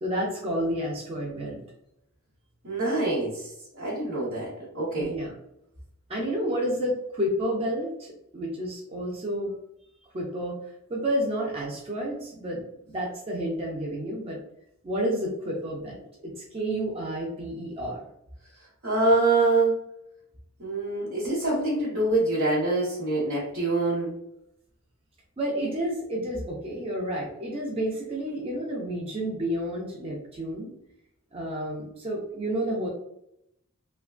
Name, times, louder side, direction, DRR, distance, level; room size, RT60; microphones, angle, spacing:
voice 1, 0.0-1.6 5.0-5.3 6.1-9.5 10.1-10.6 10.9-14.4 14.8-18.0 25.4-30.7 31.3-32.9, equal, 25° right, -3 dB, 0.5 m, -30 dB
voice 2, 2.6-5.1 18.8-19.8 20.6-24.1, right 2 dB, 60° right, -9 dB, 1.0 m, -25 dB
3.1 x 2.1 x 2.3 m, 0.78 s
head